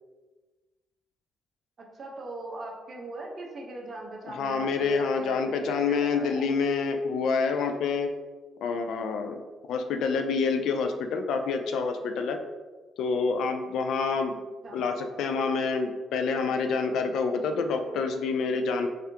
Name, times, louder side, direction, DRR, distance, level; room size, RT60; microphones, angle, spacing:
voice 1, 1.8-6.5 14.6-14.8, right 2 dB, 45° right, -1 dB, 0.9 m, -40 dB
voice 2, 4.3-8.1 8.6-9.4 9.7-12.4 13.0-14.3 14.7-18.9, left 4 dB, 80° left, 6 dB, 0.4 m, -27 dB
3.5 x 3.4 x 2.8 m, 1.3 s
cardioid pair, 90°, 0 cm